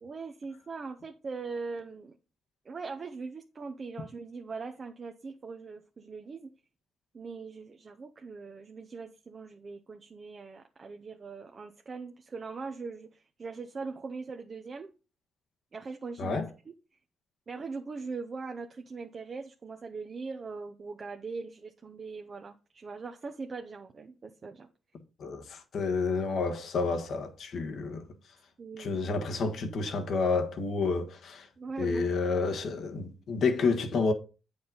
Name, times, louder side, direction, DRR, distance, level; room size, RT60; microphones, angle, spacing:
voice 1, 0.0-2.2 2.6-6.5 7.1-14.9 15.7-16.4 16.7-16.8 17.5-24.7 28.6-29.0 31.6-32.1, right 4 dB, 45° right, 0.8 m, -41 dB
voice 2, 25.2-28.0 28.8-31.5 31.8-34.1, left 4 dB, 65° left, 1.4 m, -29 dB
8.6 x 5.2 x 4.0 m
supercardioid pair, 65°, 0 cm